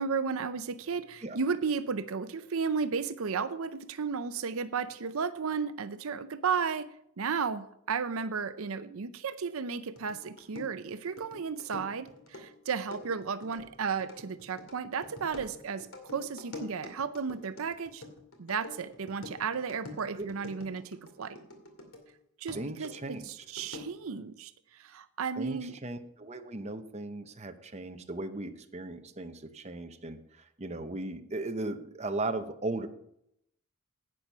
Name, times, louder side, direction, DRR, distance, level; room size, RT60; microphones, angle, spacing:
voice 1, 0.0-6.9 7.2-15.9 16.1-18.0 18.4-21.4 22.4-25.8, right 5 dB, 75° right, 12 dB, 0.6 m, -34 dB
sound 1, 10.0-22.1 22.5-24.1, left 3 dB, 75° left, 2.4 m, -47 dB
voice 2, 22.5-23.3 25.4-32.9, right 2 dB, 30° right, 7 dB, 0.8 m, -37 dB
10.5 x 8.8 x 5.5 m, 0.75 s
head